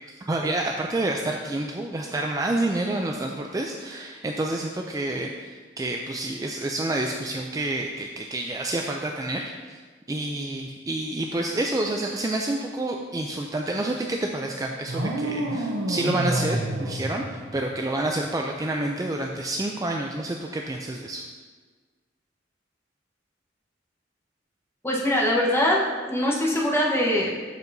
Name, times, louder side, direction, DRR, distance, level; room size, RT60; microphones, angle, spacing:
voice 1, 0.0-9.8 10.1-21.3, right 2 dB, 20° right, 1 dB, 0.3 m, -28 dB
sound 1, 14.9-18.0, right 1 dB, 85° right, 0.8 m, -29 dB
voice 2, 24.8-25.8 26.1-27.3, left 1 dB, 15° left, -4 dB, 1.1 m, -22 dB
12.5 x 4.6 x 2.7 m, 1.4 s
head